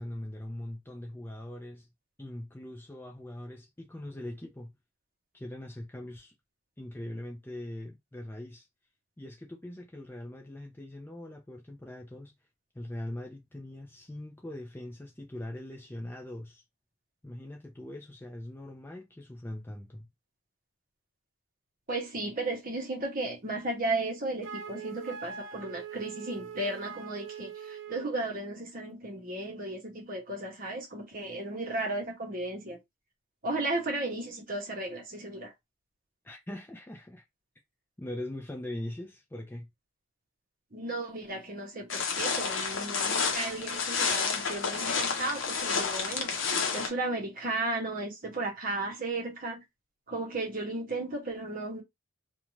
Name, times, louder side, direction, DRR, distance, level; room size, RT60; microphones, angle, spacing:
voice 1, 0.0-1.9 2.2-4.7 5.3-6.3 6.8-8.7 9.2-12.3 12.7-16.6 17.2-20.1 36.2-37.2 38.0-39.7, left 1 dB, 10° left, 0.4 m, -41 dB
voice 2, 21.9-32.8 33.4-35.5 40.7-46.4 46.7-49.6 50.1-51.8, right 2 dB, 40° right, 0.8 m, -34 dB
Wind instrument woodwind instrument, 24.4-28.1, right 7 dB, 60° right, 0.3 m, -42 dB
sound 1, 41.9-46.9, left 5 dB, 60° left, 0.6 m, -30 dB
2.5 x 2.2 x 3.1 m
head